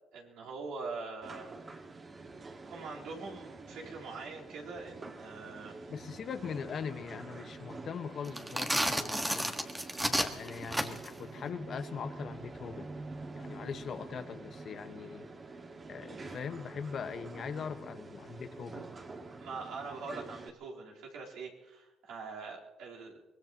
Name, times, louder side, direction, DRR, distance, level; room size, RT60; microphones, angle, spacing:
voice 1, 0.1-1.5 2.7-5.9 19.4-23.1, right 4 dB, 80° right, -4 dB, 3.9 m, -43 dB
sound 1, 1.2-20.5, right 3 dB, 35° right, 1.8 m, -47 dB
voice 2, 5.9-9.5 10.0-12.9 13.4-15.2 15.9-18.8, left 6 dB, 55° left, 8 dB, 1.3 m, -41 dB
sound 2, 8.3-11.2, right 1 dB, 10° right, 1.6 m, -32 dB
24.0 x 20.0 x 3.0 m, 1.1 s
supercardioid pair, 75°, 0 cm